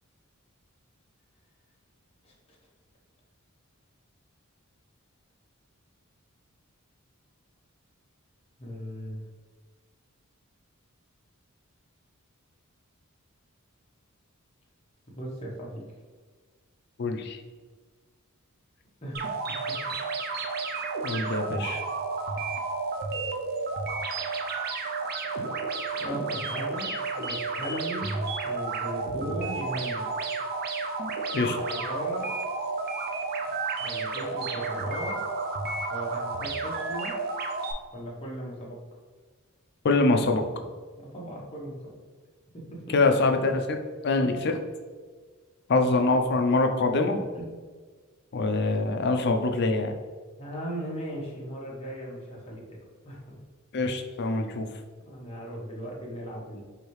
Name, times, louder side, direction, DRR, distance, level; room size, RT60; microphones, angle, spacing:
voice 1, 8.6-9.2 15.1-15.8 19.0-19.3 26.0-28.2 28.4-30.1 31.6-32.3 33.8-35.2 35.9-37.1 37.9-38.8 41.0-41.9 42.5-42.9 44.2-44.4 47.3-47.5 50.4-52.6 53.0-53.4 55.0-56.6, equal, 30° left, -4 dB, 1.0 m, -37 dB
voice 2, 17.0-17.4 21.0-21.8 31.3-31.6 39.8-40.4 42.9-43.8 44.0-44.6 45.7-47.3 48.3-49.9 53.7-54.7, left 3 dB, 50° left, 5 dB, 0.5 m, -24 dB
sound 1, 19.1-37.7, right 3 dB, 45° right, 0.5 m, -31 dB
4.8 x 2.7 x 3.1 m, 1.5 s
head